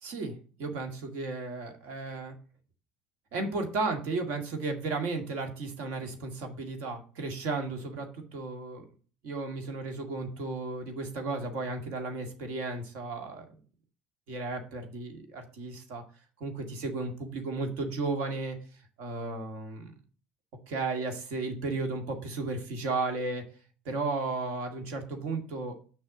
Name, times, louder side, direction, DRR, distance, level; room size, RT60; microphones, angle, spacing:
voice 1, 0.0-2.3 3.3-8.8 9.2-13.4 14.3-16.0 16.4-18.6 19.0-19.9 20.7-23.4 23.9-25.8, right 3 dB, 60° right, 5 dB, 2.1 m, -34 dB
6.4 x 5.7 x 7.2 m, 0.40 s
figure-of-eight pair, 65°, 4 cm